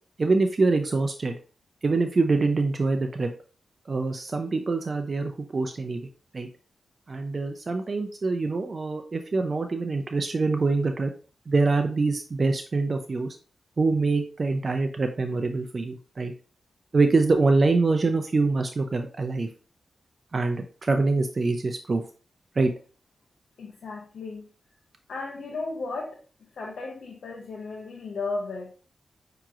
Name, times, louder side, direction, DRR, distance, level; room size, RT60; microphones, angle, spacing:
voice 1, 0.2-1.3 1.8-3.3 3.9-6.0 6.3-6.5 7.1-11.1 11.5-13.4 13.8-16.3 16.9-19.5 20.3-22.0 22.6-22.7, right 3 dB, 45° right, 6 dB, 0.4 m, -24 dB
voice 2, 23.6-24.5 25.1-26.2 26.5-28.7, left 3 dB, 80° left, -2 dB, 0.7 m, -34 dB
5.8 x 2.9 x 2.4 m, 0.37 s
cardioid pair, 65°, 0 cm